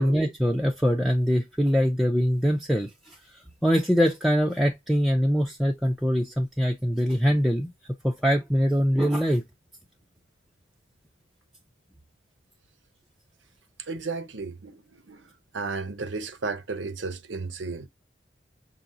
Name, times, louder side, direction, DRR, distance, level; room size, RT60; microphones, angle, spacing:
voice 1, 0.0-7.7 8.0-9.4, equal, ahead, 0.4 m, -23 dB
voice 2, 13.9-15.2 15.5-17.9, right 4 dB, 90° right, 0.8 m, -34 dB
5.8 x 2.0 x 3.8 m
head